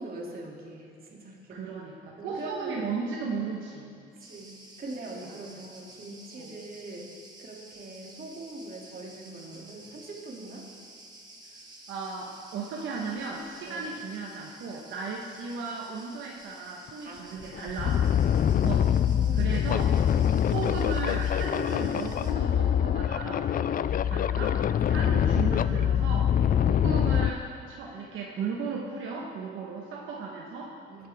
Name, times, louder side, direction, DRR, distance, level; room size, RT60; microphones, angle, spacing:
voice 1, 0.0-1.6 2.2-2.9 4.0-7.1 7.4-10.7 13.7-13.9 17.0-17.9 18.4-19.6 20.2-20.5 24.8-25.1 26.6-26.9 29.6-29.7 30.9-31.1, right 2 dB, 50° right, -2 dB, 2.8 m, -43 dB
voice 2, 1.5-3.9 5.2-5.4 6.4-6.5 11.9-18.0 18.6-18.9 19.3-19.9 20.5-26.4 26.7-30.8, right 4 dB, 80° right, -2 dB, 1.3 m, -36 dB
Cricket, 4.2-22.3, right 2 dB, 20° right, 1.8 m, -51 dB
sound 1, 16.9-17.0 17.4-27.3, left 9 dB, 45° left, 0.4 m, -24 dB
20.5 x 9.2 x 3.6 m, 2.4 s
cardioid pair, 90°, 20 cm